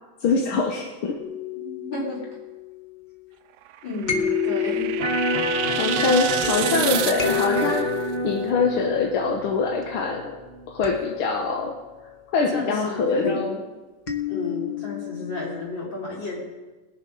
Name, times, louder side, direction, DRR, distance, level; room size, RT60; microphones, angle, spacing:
voice 1, 0.2-1.2 5.8-10.4 10.7-11.8 12.3-13.5, left 4 dB, 90° left, 1 dB, 1.9 m, -24 dB
sound 1, 1.2-3.1 4.0-9.8 10.8-12.2 14.1-15.6, left 6 dB, 40° left, 0.7 m, -31 dB
voice 2, 1.5-2.2 3.8-4.9 12.5-13.6 14.3-16.4, left 2 dB, 65° left, -4 dB, 4.3 m, -32 dB
sound 2, 3.7-7.8, right 11 dB, 75° right, 0.9 m, -30 dB
Electric guitar, 5.0-11.0, equal, 40° right, 0.8 m, -28 dB
20.0 x 7.0 x 5.2 m, 1.2 s
omnidirectional pair, 2.3 m